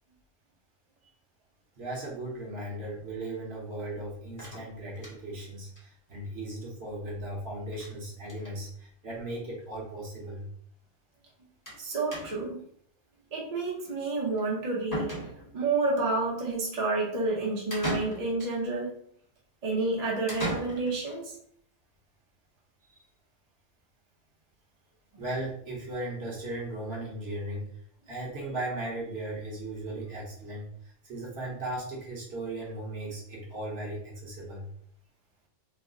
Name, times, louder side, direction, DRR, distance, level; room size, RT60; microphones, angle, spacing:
voice 1, 1.8-10.5 25.2-27.8 28.1-34.7, right 1 dB, 55° right, -4 dB, 1.2 m, -37 dB
sound 1, 4.4-5.4 5.8-5.9 6.1-6.2 6.5-6.6 7.7-8.0 8.2-8.6 9.4-9.5 9.8-9.9 11.7-11.8 12.1-12.6 14.4-14.5 14.9-15.7 17.7-18.6 20.3-21.2, right 1 dB, 15° left, 0.9 m, -37 dB
voice 2, 11.8-12.6 13.3-15.1 15.5-18.9 19.6-21.4, right 3 dB, 35° right, -4 dB, 0.7 m, -29 dB
3.1 x 2.1 x 3.7 m, 0.64 s
omnidirectional pair, 1.3 m